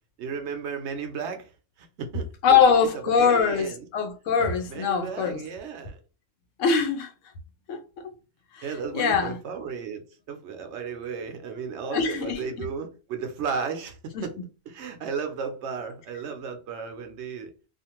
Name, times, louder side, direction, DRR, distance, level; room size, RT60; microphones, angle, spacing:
voice 1, 0.2-1.5 1.8-2.9 3.2-3.9 4.7-6.0 8.6-14.4 14.7-17.5, right 6 dB, 70° right, 0.8 m, -34 dB
voice 2, 2.4-5.4 6.6-7.1 7.7-8.1 8.5-8.7 8.9-9.4 11.9-12.4 14.1-14.2, left 6 dB, 85° left, 1.0 m, -22 dB
2.5 x 2.4 x 2.9 m
omnidirectional pair, 1.3 m